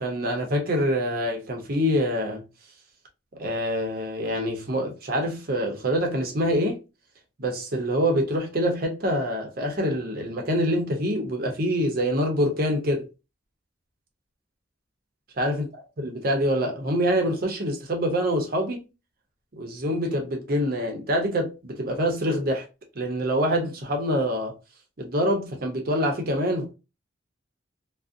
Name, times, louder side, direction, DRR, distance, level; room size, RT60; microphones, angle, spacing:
voice 1, 0.0-2.4 3.4-6.8 7.4-13.1 15.4-15.7 16.0-18.9 19.5-22.7 22.9-24.5 25.0-26.7, equal, 50° right, 0.6 m, -25 dB
2.4 x 2.0 x 2.5 m
head